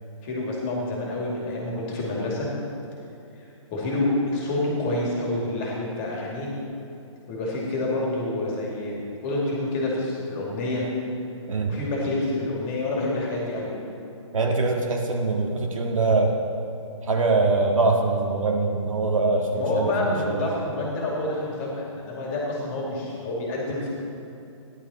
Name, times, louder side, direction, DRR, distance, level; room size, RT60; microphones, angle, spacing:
voice 1, 0.2-2.5 3.7-6.5 7.3-10.8 11.7-13.7 19.5-23.9, left 2 dB, 20° left, -3 dB, 2.3 m, -28 dB
voice 2, 14.3-16.4 17.1-20.5, right 3 dB, 80° right, 1 dB, 1.9 m, -23 dB
15.0 x 11.0 x 4.3 m, 2.7 s
hypercardioid pair, 165°, 17 cm